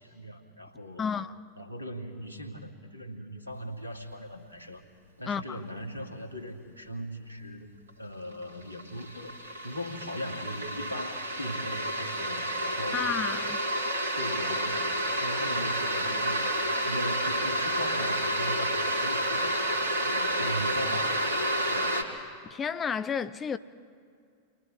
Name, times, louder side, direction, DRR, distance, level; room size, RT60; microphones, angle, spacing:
voice 1, 0.0-1.1 1.6-4.8 5.2-7.7 8.0-9.4 9.6-13.2 14.2-14.9 15.2-19.6 20.0-21.4 21.7-22.1, equal, 90° right, 2.2 m, -39 dB
voice 2, 1.0-1.3 5.2-5.6 12.9-13.6 22.4-23.6, left 6 dB, 20° left, 0.7 m, -31 dB
sound 1, 7.9-8.0 8.3-22.0, right 1 dB, 70° right, 2.7 m, -30 dB
30.0 x 23.0 x 4.9 m
figure-of-eight pair, 90°, 0 cm